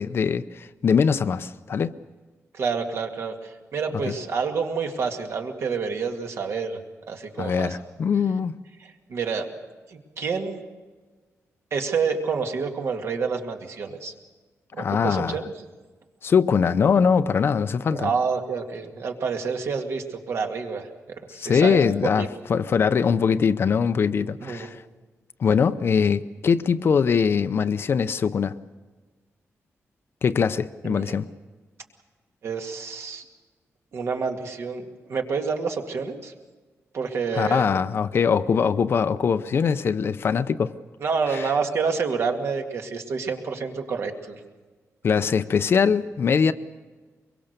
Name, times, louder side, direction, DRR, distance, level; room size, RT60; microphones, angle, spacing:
voice 1, 0.0-1.9 4.1-4.2 7.4-8.5 14.8-15.4 16.2-18.1 21.3-24.8 25.4-28.5 30.2-31.3 37.3-40.7 41.3-41.5 45.0-46.5, left 6 dB, 50° left, 12 dB, 0.7 m, -22 dB
voice 2, 2.5-6.8 7.1-7.8 8.8-9.5 9.9-10.6 11.7-14.1 14.7-15.5 17.9-20.9 21.3-21.8 22.2-22.3 24.4-24.7 30.8-31.1 32.4-33.2 33.9-34.8 35.1-36.3 36.9-37.7 41.0-44.4, right 5 dB, 60° right, 3 dB, 2.3 m, -28 dB
24.0 x 22.5 x 6.8 m, 1.3 s
wide cardioid pair, 175°, 5 cm